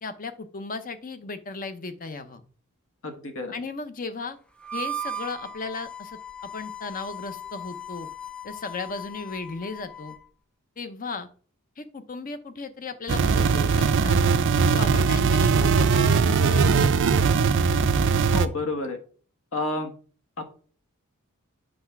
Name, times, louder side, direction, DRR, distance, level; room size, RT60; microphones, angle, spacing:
voice 1, 0.0-2.4 3.5-4.4 4.7-6.2 6.5-8.1 8.4-10.2 10.8-11.3 11.8-14.2 14.7-17.1, left 3 dB, 40° left, 10 dB, 0.8 m, -36 dB
voice 2, 3.0-3.5 18.3-19.0 19.5-19.9 20.4-20.5, left 2 dB, 65° left, 6 dB, 1.3 m, -29 dB
Harmonica, 4.6-10.3, right 1 dB, 5° left, 0.4 m, -37 dB
sound 1, 13.1-18.5, right 5 dB, 60° right, 0.5 m, -20 dB
7.9 x 3.3 x 5.8 m, 0.42 s
head